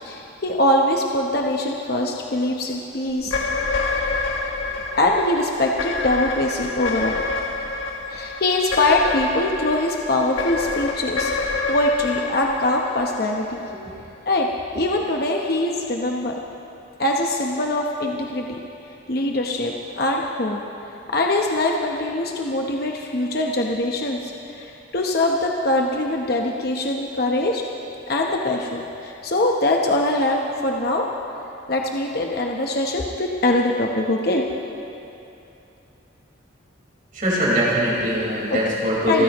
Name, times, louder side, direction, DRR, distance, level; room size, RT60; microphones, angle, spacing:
voice 1, 0.1-3.4 4.9-7.2 8.1-11.3 11.7-13.6 14.3-14.5 14.8-16.3 17.0-18.6 19.1-20.6 21.1-27.6 28.1-31.1 31.7-34.4 38.5-38.6 39.1-39.2, left 1 dB, 50° left, 0 dB, 0.9 m, -22 dB
sound 1, 3.2-13.7, left 3 dB, 80° left, 1.5 m, -28 dB
voice 2, 37.1-39.2, equal, 40° right, -6 dB, 4.4 m, -22 dB
29.0 x 14.5 x 3.0 m, 2.8 s
head